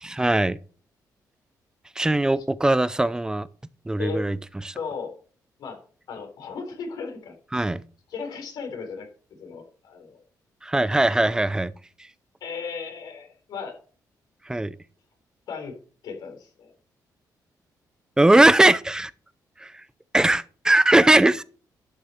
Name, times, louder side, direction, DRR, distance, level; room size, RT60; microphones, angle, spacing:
voice 1, 0.0-0.6 2.0-3.5 3.9-4.4 4.6-4.8 7.5-7.8 10.6-11.7 14.5-14.8 18.2-19.1 19.6-19.8 20.1-21.4, right 1 dB, 10° right, 0.5 m, -20 dB
voice 2, 4.7-5.1 5.6-5.8 6.1-7.3 8.1-9.1 9.4-10.2 11.2-11.3 12.4-13.8 15.5-15.7 16.0-16.7, left 5 dB, 80° left, 3.9 m, -35 dB
11.5 x 6.3 x 4.5 m
cardioid pair, 120°, 7 cm